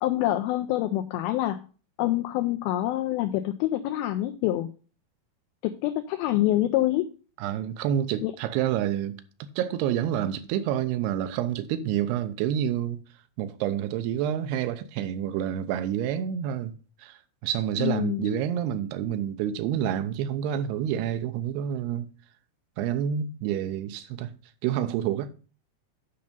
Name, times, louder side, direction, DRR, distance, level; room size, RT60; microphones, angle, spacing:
voice 1, 0.0-1.6 2.0-4.7 5.6-7.1 8.2-8.3 17.8-18.3, left 14 dB, 85° left, 2.1 m, -26 dB
voice 2, 7.4-9.1 9.6-13.0 13.4-16.7 17.0-22.1 22.8-24.3 24.6-25.3, right 10 dB, 80° right, 2.7 m, -28 dB
8.8 x 5.3 x 5.3 m
omnidirectional pair, 4.8 m